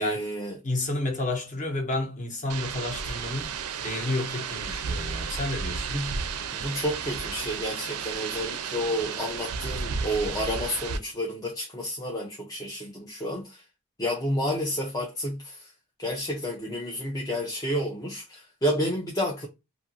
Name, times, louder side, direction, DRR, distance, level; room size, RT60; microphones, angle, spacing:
voice 1, 0.0-0.6 5.9-6.1 6.5-13.6 14.0-15.7 16.0-19.5, equal, 15° left, 0.4 m, -30 dB
voice 2, 0.6-6.0, left 2 dB, 35° left, 0.9 m, -31 dB
sound 1, 2.5-11.0, right 6 dB, 80° right, 0.4 m, -33 dB
2.5 x 2.5 x 2.7 m
head